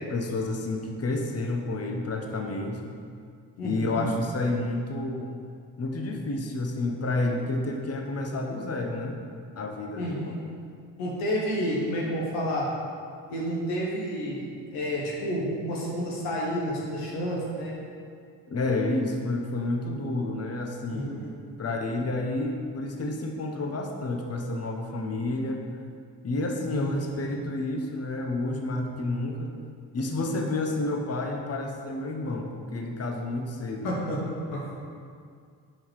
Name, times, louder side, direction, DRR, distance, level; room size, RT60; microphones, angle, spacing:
voice 1, 0.1-2.9 3.6-5.3 5.8-9.2 9.6-10.3 18.5-21.2 21.6-25.6 26.2-29.5 29.9-33.9, left 2 dB, 30° left, 2 dB, 0.9 m, -30 dB
voice 2, 3.6-4.1 9.9-10.4 11.0-12.7 13.3-17.8 20.9-21.3 26.7-27.2 33.8-34.2 34.5-34.6, equal, 85° left, -4 dB, 1.4 m, -30 dB
5.5 x 5.4 x 4.7 m, 2.2 s
hypercardioid pair, 45°, 49 cm